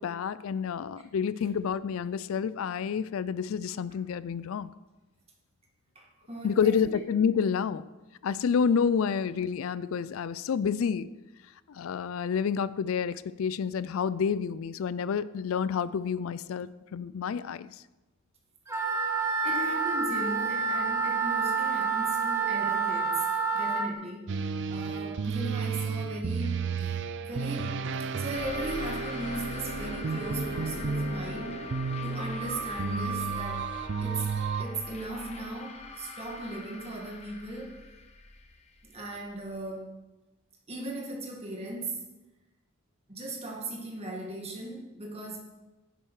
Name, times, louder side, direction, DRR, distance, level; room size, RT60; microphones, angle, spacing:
voice 1, 0.0-4.7 6.4-7.8 8.2-11.1 11.7-17.8, left 6 dB, 70° left, 17 dB, 0.4 m, -29 dB
voice 2, 6.0-6.9 19.4-23.2 23.5-24.3 24.7-31.7 32.0-33.7 34.0-34.3 34.6-37.8 38.8-40.0 40.7-42.1 43.1-45.4, right 2 dB, 30° right, -1 dB, 1.9 m, -38 dB
Wind instrument woodwind instrument, 18.7-23.9, right 5 dB, 15° right, 1.1 m, -28 dB
sound 1, 24.3-34.7, right 5 dB, 55° right, 0.5 m, -33 dB
sound 2, 28.3-39.5, left 3 dB, 30° left, 0.9 m, -41 dB
10.5 x 7.6 x 4.7 m, 1.1 s
head